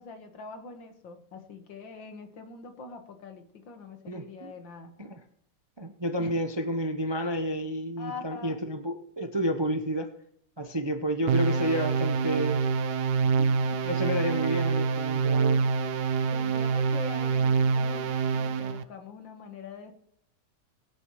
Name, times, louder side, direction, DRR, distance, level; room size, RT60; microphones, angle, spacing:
voice 1, 0.0-5.0 6.2-6.3 8.0-8.6 13.4-13.8 15.2-15.7 16.3-19.9, left 4 dB, 85° left, 6 dB, 2.2 m, -44 dB
voice 2, 4.1-4.5 5.0-5.2 5.8-10.1 10.6-12.7 13.8-15.6, equal, 30° right, 6 dB, 0.5 m, -30 dB
sound 1, 11.3-18.8, right 5 dB, 65° right, 1.3 m, -26 dB
23.5 x 9.8 x 3.1 m, 0.73 s
omnidirectional pair, 2.0 m